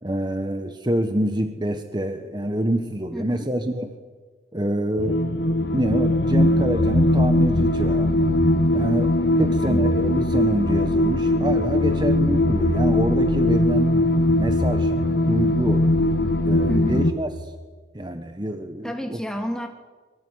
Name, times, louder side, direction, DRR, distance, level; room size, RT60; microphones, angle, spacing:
voice 1, 0.0-3.9 4.5-5.2 5.7-8.1 8.7-13.9 14.4-14.9 15.2-15.9 16.4-17.3 17.9-19.2, right 1 dB, 25° right, 7 dB, 1.4 m, -26 dB
voice 2, 3.1-3.5 9.7-9.9 16.7-17.1 18.8-19.7, equal, 5° left, 4 dB, 2.8 m, -29 dB
sound 1, 5.0-17.1, left 1 dB, 60° left, 2.1 m, -20 dB
25.5 x 24.0 x 9.7 m, 1.4 s
head